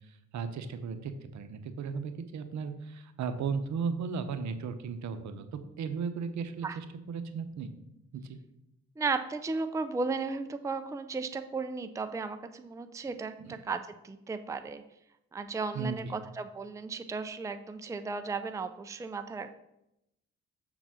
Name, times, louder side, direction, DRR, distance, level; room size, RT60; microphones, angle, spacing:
voice 1, 0.1-7.7 8.1-8.4 13.4-13.6 15.7-16.1, right 5 dB, 70° right, 9 dB, 0.9 m, -36 dB
voice 2, 9.0-14.8 15.3-19.6, right 4 dB, 10° right, 9 dB, 0.4 m, -35 dB
6.7 x 4.0 x 6.1 m, 0.84 s
cardioid pair, 90°, 30 cm